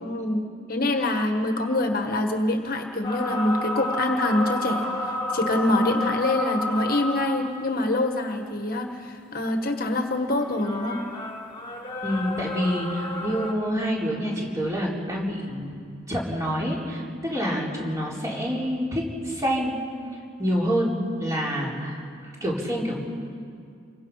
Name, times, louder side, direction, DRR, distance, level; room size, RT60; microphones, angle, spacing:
voice 1, 0.0-11.0, left 1 dB, 45° left, 4 dB, 1.4 m, -25 dB
sound 1, 3.0-7.5 10.4-13.5, left 1 dB, 25° left, 2.1 m, -30 dB
voice 2, 12.0-15.7 16.1-19.7 20.4-23.0, equal, 15° right, -4 dB, 4.2 m, -27 dB
28.5 x 23.5 x 5.6 m, 2.3 s
head